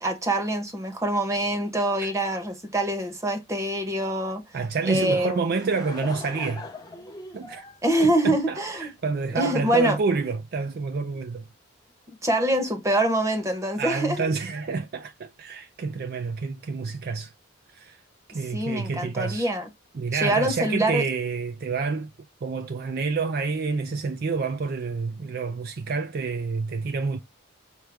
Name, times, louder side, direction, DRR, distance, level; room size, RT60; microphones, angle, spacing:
voice 1, 0.0-4.4 4.8-5.4 7.8-8.9 9.3-10.0 12.1-14.2 18.5-19.6 20.1-21.0, right 1 dB, 15° right, 0.8 m, -25 dB
voice 2, 4.5-6.7 7.3-7.6 8.0-11.5 13.8-17.3 17.7-18.0 18.3-19.5 19.9-22.1 22.4-27.2, right 4 dB, 45° right, 0.3 m, -28 dB
Laughter / Crowd, 5.2-9.0, left 3 dB, 15° left, 0.7 m, -41 dB
6.1 x 2.2 x 3.3 m
head